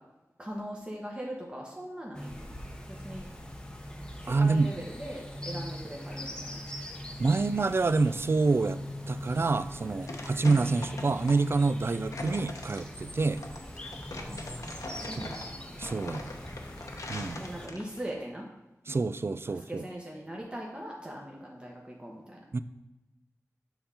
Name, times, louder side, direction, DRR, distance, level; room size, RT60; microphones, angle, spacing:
voice 1, 0.4-2.5 3.0-3.3 4.2-6.6 10.3-10.8 14.2-15.6 16.0-16.4 16.7-16.8 17.4-18.4 19.5-22.4, equal, 15° right, -2 dB, 1.1 m, -41 dB
sound 1, 2.1-17.7, left 1 dB, 15° left, 0.8 m, -41 dB
voice 2, 4.3-4.7 7.2-8.8 9.1-13.4 15.1-15.3 15.8-16.4 17.1-17.4 18.9-19.8 22.5-22.6, right 3 dB, 45° right, 13 dB, 0.3 m, -27 dB
sound 2, 9.9-18.1, left 2 dB, 75° left, 0.8 m, -42 dB
7.0 x 3.8 x 5.6 m, 1.0 s
wide cardioid pair, 75°, 6 cm